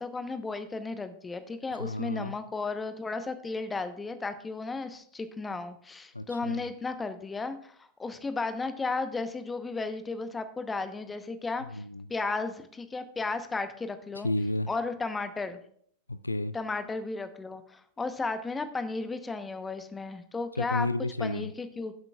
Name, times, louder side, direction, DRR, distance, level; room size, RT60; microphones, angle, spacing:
voice 1, 0.0-11.8 12.1-14.3 14.7-15.6 16.5-20.9 21.2-21.9, left 3 dB, 15° left, 10 dB, 0.9 m, -34 dB
voice 2, 1.7-2.3 6.1-6.7 11.7-12.1 14.2-14.7 16.1-16.6 20.6-21.5, left 2 dB, 80° left, 15 dB, 0.3 m, -32 dB
16.5 x 8.1 x 2.4 m, 0.62 s
figure-of-eight pair, 90°, 0 cm